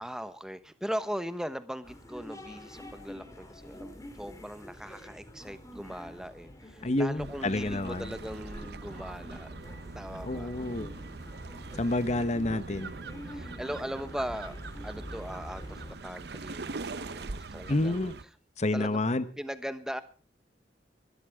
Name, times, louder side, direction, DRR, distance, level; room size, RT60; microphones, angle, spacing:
voice 1, 0.0-9.5 9.9-10.5 13.2-14.5 14.8-17.3 17.5-18.1 18.7-19.0 19.4-20.0, equal, 5° right, 12 dB, 1.1 m, -39 dB
sound 1, 1.8-15.9, equal, 20° left, 3.1 m, -46 dB
voice 2, 6.8-8.1 10.2-10.9 11.8-12.9 17.7-18.1 18.6-19.2, left 2 dB, 40° left, 13 dB, 0.9 m, -29 dB
sound 2, 7.2-18.2, right 3 dB, 65° right, 0.8 m, -42 dB
23.0 x 12.5 x 3.6 m, 0.36 s
head